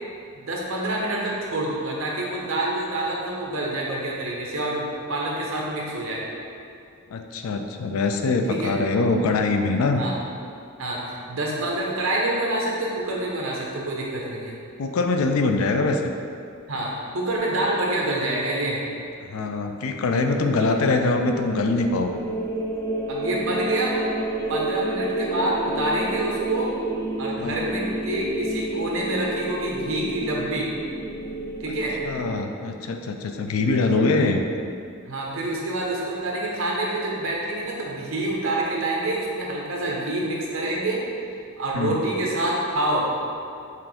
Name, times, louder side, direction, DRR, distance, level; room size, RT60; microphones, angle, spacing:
voice 1, 0.3-6.2 8.5-8.7 10.0-10.1 10.8-14.6 16.7-18.9 23.1-24.0 24.5-26.7 27.2-30.7 31.6-32.0 35.0-41.0 41.6-43.1, right 1 dB, 75° right, -3 dB, 0.8 m, -27 dB
voice 2, 7.1-10.0 14.8-16.1 19.2-22.2 27.4-27.6 32.1-34.4 41.7-42.0, left 3 dB, 85° left, 5 dB, 0.4 m, -23 dB
sound 1, 20.9-32.4, right 1 dB, 15° left, 0.3 m, -30 dB
5.5 x 2.6 x 3.5 m, 2.4 s
head